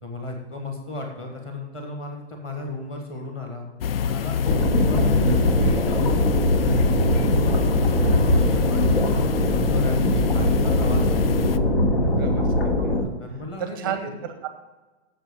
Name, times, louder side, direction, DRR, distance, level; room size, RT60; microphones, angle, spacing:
voice 1, 0.0-3.7 3.9-4.4 4.8-6.8 7.1-8.9 9.5-12.4 13.2-14.1, left 2 dB, 15° left, 2 dB, 1.3 m, -36 dB
sound 1, 3.8-11.6, left 7 dB, 55° left, 0.5 m, -27 dB
sound 2, 4.4-13.0, left 1 dB, 75° left, 2.8 m, -21 dB
voice 2, 12.2-13.0 13.6-14.5, right 9 dB, 20° right, 8 dB, 0.7 m, -33 dB
7.5 x 6.9 x 7.0 m, 1.2 s
hypercardioid pair, 170°, 34 cm